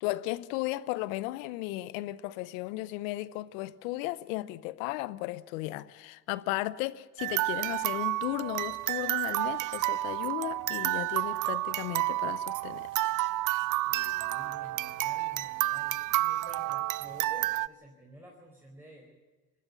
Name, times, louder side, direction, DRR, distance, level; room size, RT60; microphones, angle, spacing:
voice 1, 0.0-13.1, left 17 dB, 80° left, 0.8 m, -35 dB
sound 1, 7.2-17.7, right 17 dB, 50° right, 0.5 m, -30 dB
voice 2, 13.8-19.1, right 1 dB, 5° right, 4.8 m, -51 dB
20.5 x 14.5 x 9.4 m
hypercardioid pair, 55°, 40 cm